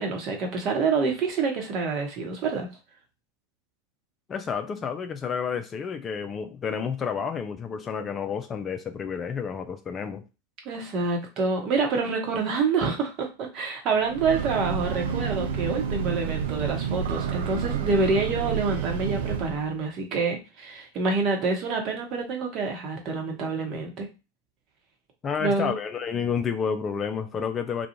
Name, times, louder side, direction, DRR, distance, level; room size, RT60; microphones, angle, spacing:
voice 1, 0.0-2.7 10.6-24.1 25.4-25.7, right 4 dB, 40° right, 0.9 m, -27 dB
voice 2, 4.3-10.2 25.2-27.9, left 6 dB, 25° left, 0.4 m, -30 dB
Breathing / Train, 14.0-19.7, right 7 dB, 60° right, 0.4 m, -29 dB
2.4 x 2.2 x 2.9 m
figure-of-eight pair, 90°, 0 cm